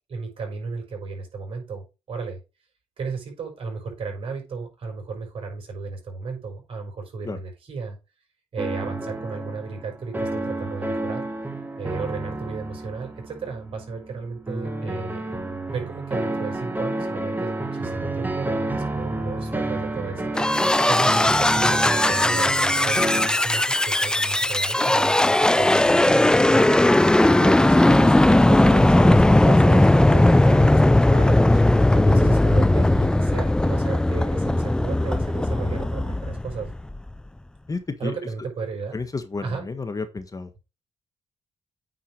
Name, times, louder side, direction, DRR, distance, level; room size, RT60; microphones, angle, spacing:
voice 1, 0.1-2.4 3.0-8.0 8.5-11.3 11.8-15.2 15.7-20.3 20.9-26.8 27.3-31.4 31.9-36.7 38.0-39.0 39.4-39.6, right 4 dB, 50° right, 2 dB, 5.7 m, -34 dB
sound 1, 8.6-23.3, right 2 dB, 15° right, 1.5 m, -30 dB
sound 2, 20.3-37.0, left 1 dB, 5° left, 0.3 m, -18 dB
voice 2, 37.7-38.1 38.9-40.5, left 4 dB, 30° left, 9 dB, 1.3 m, -31 dB
9.1 x 4.7 x 4.8 m, 0.28 s
cardioid pair, 75°, 12 cm